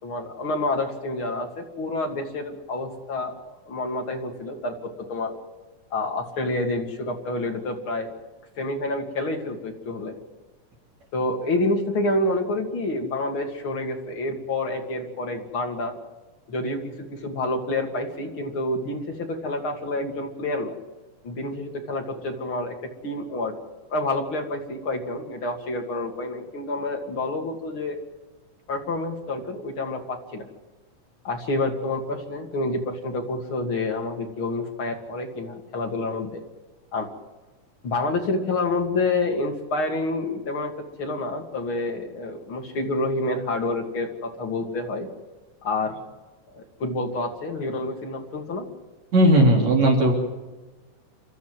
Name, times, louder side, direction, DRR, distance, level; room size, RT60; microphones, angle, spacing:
voice 1, 0.0-5.3 5.9-8.1 8.6-10.1 11.1-15.9 16.5-20.7 21.2-22.7 23.0-23.5 23.9-28.0 28.7-30.4 31.2-36.4 36.9-37.1 37.8-40.7 41.0-45.1 45.6-46.0 46.5-48.7, left 2 dB, 40° left, 2 dB, 3.4 m, -28 dB
voice 2, 49.1-50.1, right 1 dB, 60° right, 1 dB, 4.5 m, -17 dB
29.0 x 13.5 x 7.9 m, 1.2 s
omnidirectional pair, 3.6 m